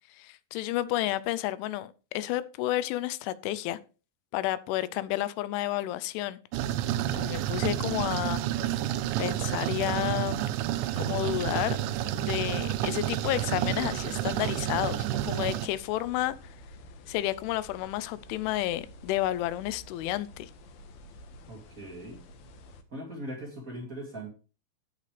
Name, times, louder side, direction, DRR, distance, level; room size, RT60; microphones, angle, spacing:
voice 1, 0.1-3.8 4.3-6.4 7.1-8.4 9.2-10.4 11.0-11.8 12.1-16.4 17.1-20.5, left 15 dB, 85° left, 3.1 m, -31 dB
sound 1, 6.5-15.7, right 12 dB, 85° right, 3.1 m, -30 dB
sound 2, 7.9-22.8, left 1 dB, 70° left, 2.6 m, -50 dB
voice 2, 21.4-22.2 22.9-24.3, right 1 dB, 45° right, 1.1 m, -40 dB
16.0 x 6.6 x 3.3 m
omnidirectional pair, 5.4 m